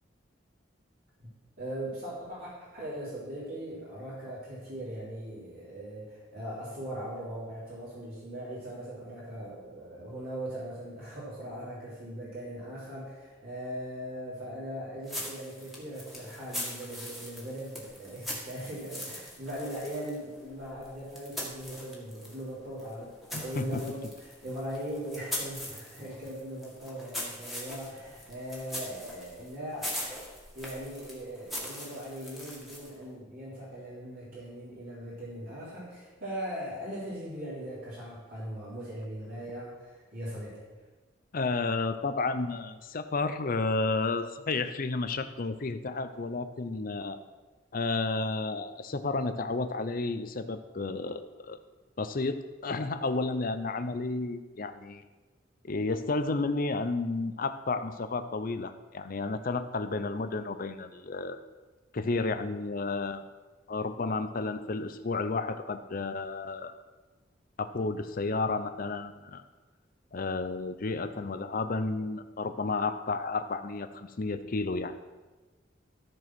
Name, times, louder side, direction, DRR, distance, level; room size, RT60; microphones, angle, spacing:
voice 1, 1.6-30.2 30.5-40.6, equal, 50° right, -9 dB, 3.5 m, -40 dB
sound 1, 15.0-22.4 22.8-33.0, left 1 dB, ahead, 1.9 m, -41 dB
voice 2, 23.3-23.8 41.3-47.2 47.7-51.6 52.0-55.0 55.6-61.4 61.9-63.2 63.7-66.7 67.6-69.4 70.1-75.0, left 3 dB, 50° left, 10 dB, 0.6 m, -32 dB
14.0 x 4.7 x 6.0 m, 1.3 s
head